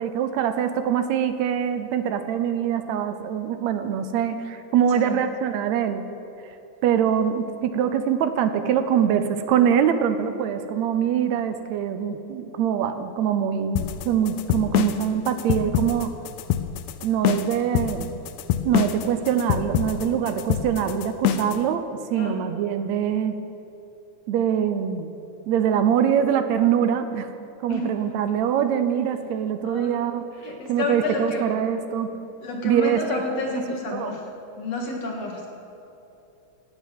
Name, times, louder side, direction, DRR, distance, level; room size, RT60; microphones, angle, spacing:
voice 1, 0.0-6.0 6.8-16.1 17.0-18.1 18.6-23.4 24.3-25.2 25.5-27.3 27.6-30.3 30.7-32.2 32.6-33.2 33.6-33.7 33.9-34.2, right 8 dB, 75° right, 9 dB, 1.9 m, -23 dB
sound 1, 13.8-21.6, left 10 dB, 90° left, 2.0 m, -25 dB
voice 2, 22.1-22.4 27.7-28.0 29.6-30.0 30.4-31.4 32.4-34.2 34.6-35.5, left 2 dB, 60° left, 0 dB, 2.8 m, -29 dB
12.5 x 8.1 x 9.2 m, 2.9 s
omnidirectional pair, 3.4 m